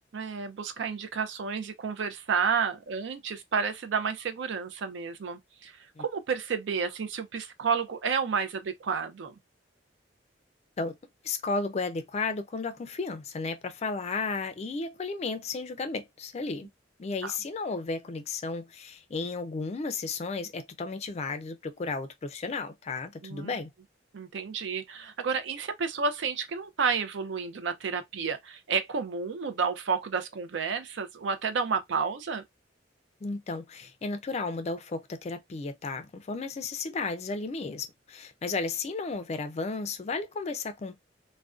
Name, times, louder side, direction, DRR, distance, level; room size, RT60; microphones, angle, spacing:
voice 1, 0.1-9.3 17.2-17.3 23.2-23.5 24.1-32.4, right 5 dB, 75° right, 0.5 m, -31 dB
voice 2, 11.2-16.7 17.0-23.7 33.2-41.0, left 3 dB, 35° left, 0.4 m, -33 dB
2.4 x 2.1 x 2.4 m
head